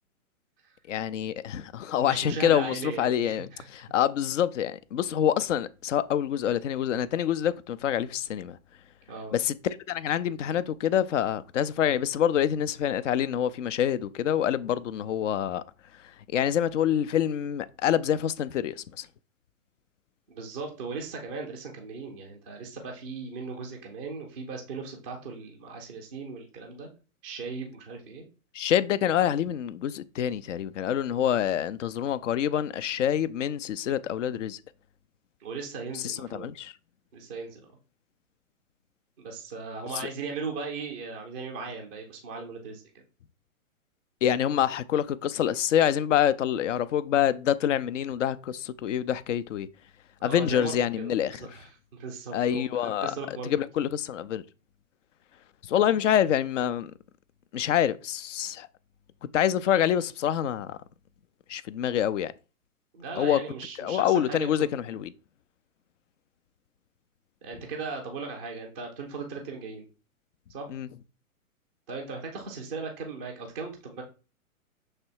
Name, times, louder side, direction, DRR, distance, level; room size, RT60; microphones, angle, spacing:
voice 1, 0.9-8.6 9.3-15.6 16.3-19.1 28.5-34.6 35.9-36.7 44.2-49.7 50.2-51.5 52.3-53.1 53.4-54.4 55.6-56.9 57.5-58.7 59.3-60.8 61.5-62.3 63.2-63.4 63.8-65.1 70.7-70.9, left 10 dB, 60° left, 0.6 m, -26 dB
voice 2, 2.0-3.6 9.1-9.3 20.3-26.9 27.2-28.3 35.4-36.5 37.1-37.7 39.2-43.0 50.2-53.5 62.9-65.0 67.4-69.9 70.5-70.7 71.9-74.0, right 4 dB, 5° right, 0.3 m, -38 dB
6.6 x 3.3 x 4.5 m
hypercardioid pair, 130°, 43 cm